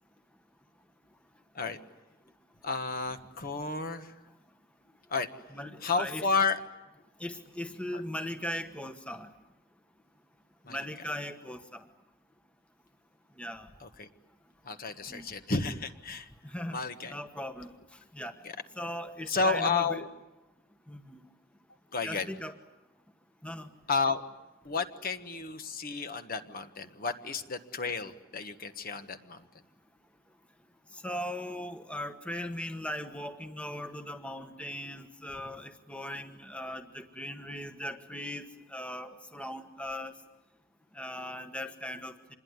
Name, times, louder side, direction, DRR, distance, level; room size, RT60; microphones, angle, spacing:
voice 1, 2.6-4.1 5.1-5.3 5.8-6.6 7.9-8.0 10.7-10.8 13.8-14.1 14.6-16.3 16.7-17.1 19.3-20.1 21.9-22.3 23.9-24.2 24.6-29.4, left 4 dB, 40° left, 8 dB, 1.4 m, -31 dB
voice 2, 5.5-6.3 7.2-9.3 10.7-11.8 13.4-13.7 15.1-15.2 16.4-16.8 17.1-17.7 18.1-18.3 18.8-20.0 20.9-21.2 22.0-22.5 23.4-23.7 31.0-40.1 40.9-42.3, left 1 dB, 5° left, 7 dB, 1.2 m, -39 dB
26.5 x 21.5 x 9.7 m, 1.0 s
head